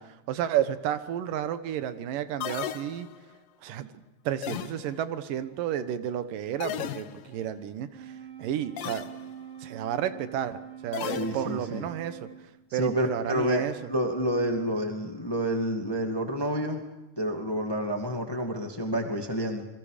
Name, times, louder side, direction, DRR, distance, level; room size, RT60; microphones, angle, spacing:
voice 1, 0.0-3.1 3.6-3.9 4.3-8.1 8.4-9.1 9.6-12.3 12.7-13.7, right 10 dB, 80° right, 12 dB, 2.7 m, -31 dB
sound 1, 2.4-3.4 4.4-5.2 6.6-7.5 8.8-9.3 10.9-11.8, left 11 dB, 85° left, 2.7 m, -36 dB
Wind instrument woodwind instrument, 7.8-12.6, right 9 dB, 45° right, 3.5 m, -44 dB
voice 2, 11.1-11.8 12.7-16.8 17.2-19.7, equal, 10° left, 4 dB, 1.6 m, -29 dB
28.5 x 22.5 x 5.1 m, 1.0 s
omnidirectional pair, 3.9 m